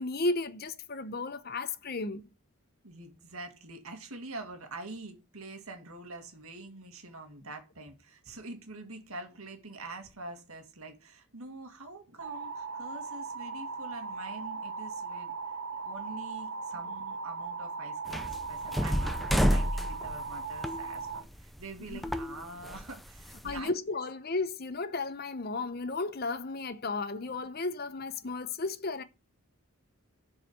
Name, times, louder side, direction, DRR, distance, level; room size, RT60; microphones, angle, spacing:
voice 1, 0.0-2.3 21.9-22.0 23.4-29.0, left 3 dB, 45° left, 0.8 m, -34 dB
voice 2, 2.8-15.3 15.8-23.7, right 2 dB, 75° right, 2.2 m, -45 dB
sound 1, 12.2-21.2, right 4 dB, 55° right, 0.8 m, -38 dB
sound 2, 18.1-21.6 21.9-23.6, equal, ahead, 0.5 m, -30 dB
7.5 x 4.8 x 6.7 m
head